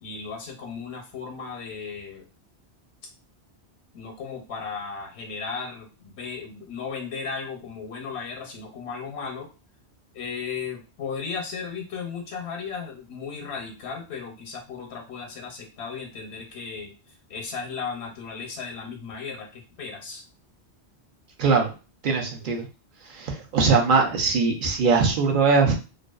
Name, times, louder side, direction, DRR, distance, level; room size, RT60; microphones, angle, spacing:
voice 1, 0.0-2.3 3.9-9.5 10.1-20.2 22.5-22.6, left 5 dB, 80° left, 3 dB, 0.9 m, -35 dB
voice 2, 21.4-21.7 22.0-22.7 23.0-25.7, right 4 dB, 55° right, 1 dB, 0.7 m, -21 dB
2.5 x 2.2 x 2.3 m, 0.32 s
omnidirectional pair, 1.1 m